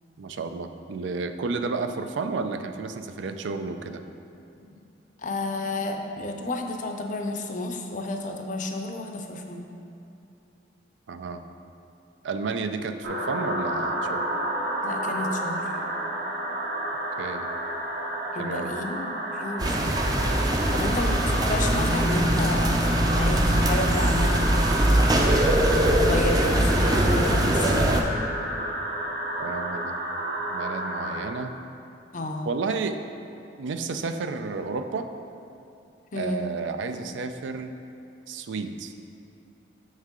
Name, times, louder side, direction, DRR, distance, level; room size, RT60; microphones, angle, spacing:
voice 1, 0.2-4.0 11.1-11.4 12.2-14.3 17.2-17.5 18.4-18.7 29.4-30.0 30.5-31.6 32.5-33.0 33.6-35.1 36.1-37.7 38.3-38.9, right 4 dB, 85° right, 8 dB, 0.4 m, -31 dB
voice 2, 5.2-9.7 14.8-15.7 18.3-20.0 20.7-24.7 26.0-27.8 32.1-32.5 36.1-36.5, left 2 dB, 45° left, 3 dB, 0.5 m, -31 dB
sound 1, 13.0-31.2, right 1 dB, 65° right, 1.0 m, -31 dB
sound 2, 19.6-28.0, right 1 dB, 20° right, 0.4 m, -22 dB
Bass guitar, 21.8-28.0, left 2 dB, 40° right, 0.8 m, -32 dB
6.6 x 6.3 x 3.7 m, 2.7 s
head